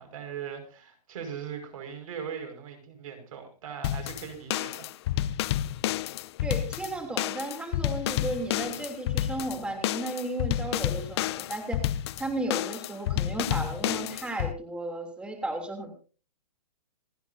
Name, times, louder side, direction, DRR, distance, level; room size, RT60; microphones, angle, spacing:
voice 1, 0.0-5.4, right 7 dB, 55° right, 6 dB, 5.6 m, -40 dB
sound 1, 3.8-14.5, left 13 dB, 40° left, 0.6 m, -30 dB
voice 2, 6.4-11.8 12.2-15.9, right 1 dB, 5° right, 4 dB, 3.1 m, -34 dB
27.5 x 10.0 x 2.7 m, 0.36 s
hypercardioid pair, 145°, 21 cm